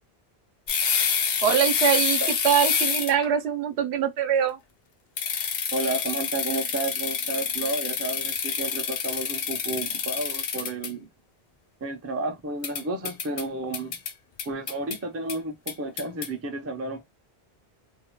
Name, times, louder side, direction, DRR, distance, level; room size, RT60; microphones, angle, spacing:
sound 1, 0.7-3.3 5.2-10.9 12.6-13.4 13.7-14.1 14.4-15.0 15.3-15.4 15.7-16.3, left 7 dB, 65° left, 0.8 m, -27 dB
voice 1, 1.4-4.6, right 8 dB, 80° right, 0.8 m, -23 dB
voice 2, 5.7-11.1 11.8-14.0 14.4-17.0, right 2 dB, 25° right, 0.3 m, -31 dB
2.6 x 2.1 x 2.9 m
omnidirectional pair, 1.1 m